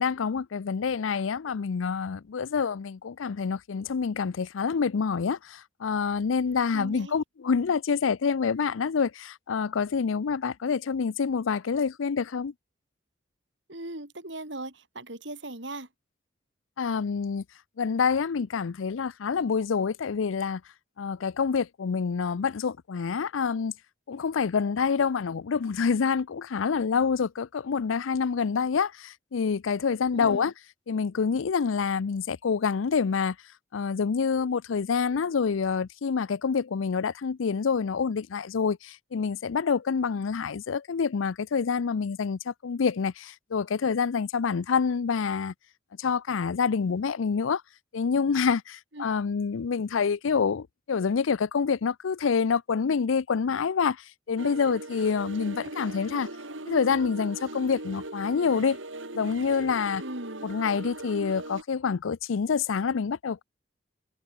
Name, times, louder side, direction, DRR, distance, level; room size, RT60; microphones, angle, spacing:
voice 1, 0.0-12.5 16.8-17.4 17.8-20.6 21.0-23.7 24.1-30.5 30.9-33.3 33.7-45.5 46.0-47.6 47.9-54.0 54.3-56.3 56.7-58.8 59.1-60.0 60.4-63.4, left 5 dB, 90° left, 0.5 m, -27 dB
voice 2, 6.7-7.2 13.7-15.9 30.1-30.5 48.9-49.0 60.0-60.5, right 1 dB, 65° right, 4.7 m, -39 dB
sound 1, 54.4-61.6, right 2 dB, 85° right, 5.5 m, -39 dB
head